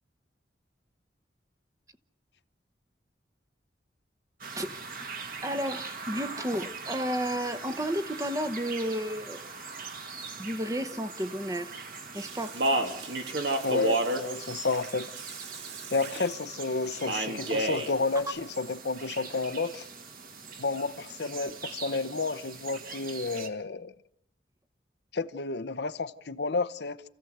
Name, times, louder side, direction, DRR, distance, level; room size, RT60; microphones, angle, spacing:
sound 1, 4.4-23.5, right 4 dB, 50° right, 2.0 m, -42 dB
voice 1, 5.4-9.5 10.4-11.7 12.1-12.6, equal, 20° right, 0.9 m, -32 dB
Speech, 12.2-16.3 17.1-17.9, right 1 dB, 75° right, 2.5 m, -30 dB
voice 2, 13.6-15.1 15.9-19.9 20.6-23.9 25.1-27.0, left 3 dB, 70° left, 0.8 m, -31 dB
28.0 x 15.0 x 7.9 m
head